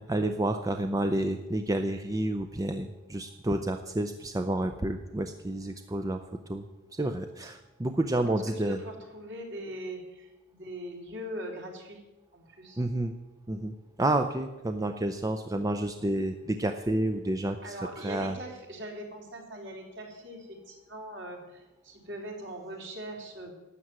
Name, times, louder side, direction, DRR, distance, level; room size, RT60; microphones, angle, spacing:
voice 1, 0.0-6.6 6.9-8.8 12.8-13.1 13.5-17.8 18.0-18.4, right 1 dB, 15° right, 7 dB, 0.5 m, -30 dB
voice 2, 8.1-12.0 12.3-12.8 17.6-23.5, equal, 55° right, 0 dB, 3.4 m, -41 dB
12.5 x 7.5 x 9.4 m, 1.1 s
head